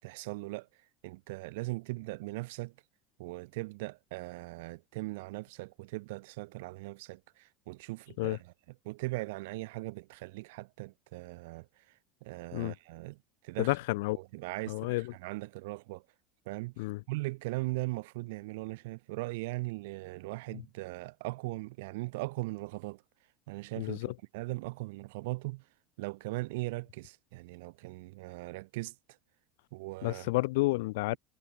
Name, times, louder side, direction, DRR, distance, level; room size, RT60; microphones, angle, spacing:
voice 1, 0.0-2.7 3.2-8.5 8.8-13.2 13.4-13.8 14.2-16.0 16.5-23.0 23.5-24.1 24.3-25.7 26.0-29.2 29.7-30.3, right 22 dB, 75° right, 5.2 m, -39 dB
voice 2, 13.6-14.2 14.7-15.1 16.8-17.0 23.8-24.1 30.0-31.2, left 21 dB, 75° left, 2.7 m, -30 dB
cardioid pair, 170°, 0 cm